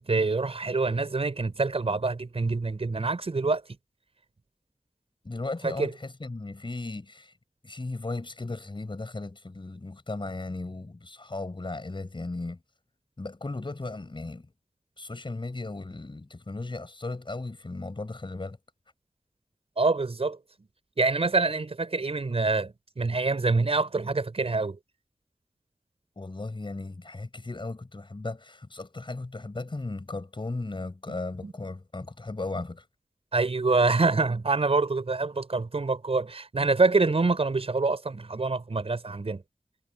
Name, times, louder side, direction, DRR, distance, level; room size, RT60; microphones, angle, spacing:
voice 1, 0.0-3.6 5.6-5.9 19.8-20.4 21.0-24.8 31.1-31.2 31.4-31.5 33.3-39.4, right 3 dB, 65° right, 5.7 m, -26 dB
voice 2, 5.2-7.3 7.6-12.6 13.2-14.5 15.0-18.6 26.2-32.8, left 2 dB, 50° left, 6.6 m, -36 dB
wide cardioid pair, 45°, 11 cm